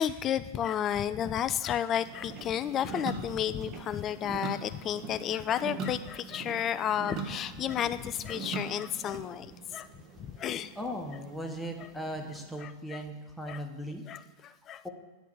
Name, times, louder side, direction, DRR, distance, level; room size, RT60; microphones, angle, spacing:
voice 1, 0.0-9.9 10.2-10.7 11.8-11.9 12.6-13.0 13.5-13.6 14.1-14.9, left 10 dB, 30° left, 14 dB, 0.3 m, -32 dB
sound 1, 1.9-12.6, right 4 dB, 35° right, 0.9 m, -42 dB
voice 2, 10.8-14.0 14.8-14.9, equal, 5° left, 1 dB, 0.9 m, -38 dB
9.4 x 3.3 x 5.0 m, 1.2 s
figure-of-eight pair, 90°, 0 cm